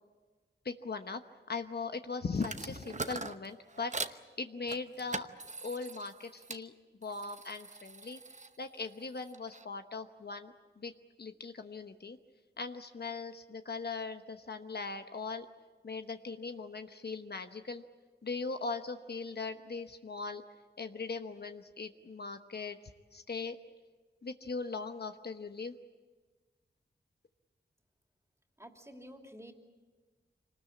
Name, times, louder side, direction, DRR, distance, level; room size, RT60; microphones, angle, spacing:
voice 1, 0.6-1.2 1.5-5.3 5.6-6.7 7.0-8.2 8.6-10.9 11.2-12.2 12.6-15.5 15.8-17.8 18.2-20.4 20.8-22.8 23.1-23.6 24.2-25.7, left 4 dB, 60° left, 7 dB, 1.0 m, -39 dB
sound 1, 2.3-4.2 4.7-6.6 7.0-9.7, right 3 dB, 40° right, 0.9 m, -43 dB
voice 2, 28.6-29.5, equal, 15° right, 3 dB, 3.0 m, -50 dB
25.5 x 19.5 x 8.6 m, 1.4 s
wide cardioid pair, 65°, 19 cm